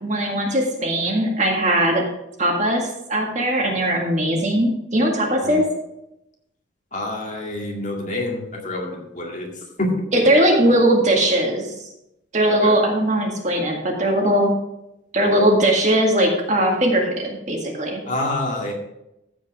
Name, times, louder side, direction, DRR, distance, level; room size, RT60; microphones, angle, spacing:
voice 1, 0.0-2.0 2.4-5.6 10.1-11.7 12.3-14.5 15.1-18.0, right 1 dB, 40° right, 0 dB, 1.9 m, -19 dB
voice 2, 6.9-9.9 12.5-12.8 18.1-18.7, left 1 dB, 40° left, -1 dB, 2.1 m, -27 dB
14.5 x 5.2 x 4.8 m, 0.87 s
head